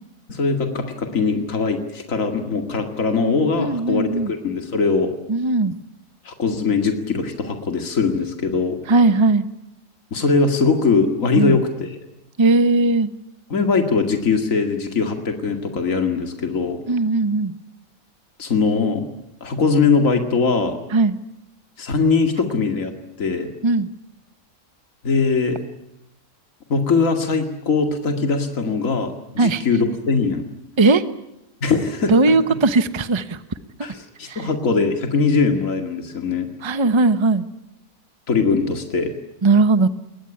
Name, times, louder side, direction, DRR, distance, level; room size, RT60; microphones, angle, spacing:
voice 1, 0.3-5.1 6.2-8.8 10.1-12.0 13.5-16.8 18.4-19.0 19.4-20.8 21.8-23.5 25.0-25.6 26.7-30.5 31.6-32.3 33.8-36.5 38.3-39.1, left 4 dB, 60° left, 5 dB, 2.6 m, -21 dB
voice 2, 3.6-4.3 5.3-5.7 8.9-9.4 11.3-11.6 12.4-13.1 16.9-17.5 20.9-21.1 23.6-23.9 29.4-29.6 30.8-31.0 32.1-33.4 34.3-34.4 36.6-37.5 39.4-39.9, right 3 dB, 20° right, 12 dB, 0.9 m, -18 dB
22.5 x 19.5 x 10.0 m, 0.90 s
omnidirectional pair, 1.6 m